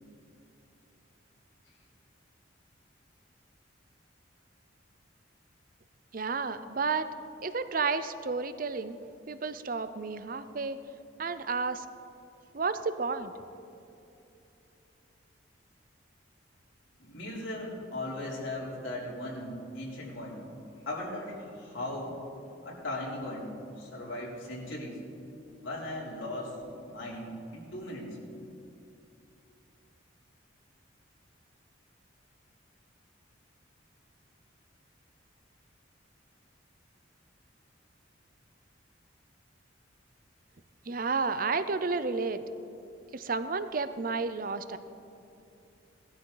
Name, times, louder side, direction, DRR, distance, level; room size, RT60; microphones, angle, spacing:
voice 1, 6.1-7.1 7.4-9.0 9.3-10.8 11.2-11.9 12.5-13.3 40.9-42.4 43.1-44.8, right 4 dB, 45° right, 12 dB, 0.6 m, -31 dB
voice 2, 17.0-20.4 20.8-22.2 22.6-25.0 25.6-26.6 26.9-28.1, left 1 dB, 85° left, -5 dB, 3.5 m, -38 dB
18.5 x 13.0 x 4.0 m, 2.8 s
head